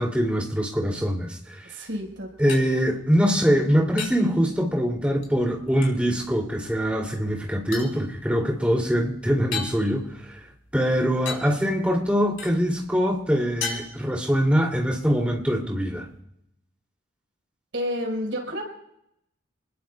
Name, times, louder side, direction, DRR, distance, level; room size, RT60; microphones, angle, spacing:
voice 1, 0.0-1.9 2.4-10.4 10.7-16.1, equal, 5° right, -1 dB, 2.9 m, -23 dB
voice 2, 1.6-2.6 17.7-18.6, equal, 65° right, 0 dB, 5.2 m, -30 dB
sound 1, 1.9-16.2, left 5 dB, 80° left, 3.7 m, -41 dB
29.0 x 20.5 x 2.4 m, 0.79 s
head